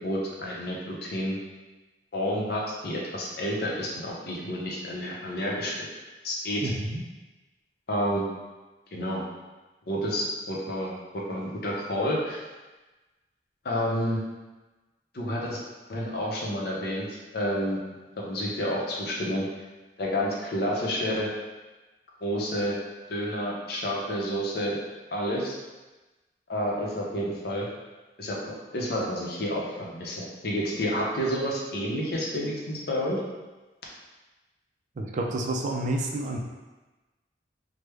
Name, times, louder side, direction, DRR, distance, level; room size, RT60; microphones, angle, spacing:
voice 1, 0.0-1.4 2.1-5.7 6.2-6.7 7.9-8.2 8.9-9.2 9.9-12.4 13.6-14.2 15.1-15.6 15.9-17.8 18.2-19.4 20.0-21.3 22.2-22.8 23.1-24.8 25.1-25.5 26.5-27.7 28.2-28.4 28.7-33.2, equal, 60° left, -3 dB, 0.6 m, -29 dB
voice 2, 6.6-7.0 35.0-36.4, right 1 dB, 45° right, 1 dB, 0.3 m, -29 dB
3.2 x 2.0 x 3.3 m, 1.2 s
head